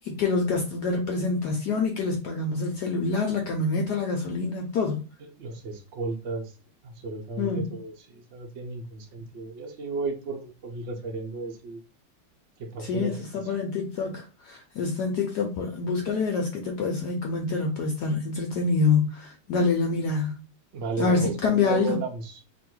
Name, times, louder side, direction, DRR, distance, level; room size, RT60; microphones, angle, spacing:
voice 1, 0.0-5.0 7.4-7.7 12.8-20.3 21.0-22.0, left 4 dB, 70° left, 1.0 m, -26 dB
voice 2, 5.2-6.5 6.8-11.8 12.6-13.5 20.7-22.4, right 4 dB, 70° right, 0.6 m, -34 dB
3.0 x 2.7 x 4.3 m
omnidirectional pair, 2.3 m